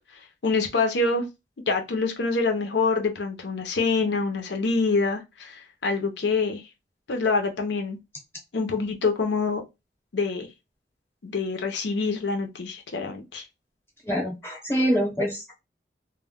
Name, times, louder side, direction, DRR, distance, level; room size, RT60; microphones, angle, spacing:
voice 1, 0.4-1.3 1.7-6.6 7.1-8.0 8.5-9.6 10.1-10.5 11.2-13.4, left 4 dB, 75° left, 0.6 m, -26 dB
voice 2, 14.1-15.5, equal, 15° left, 0.8 m, -25 dB
2.2 x 2.1 x 3.5 m
head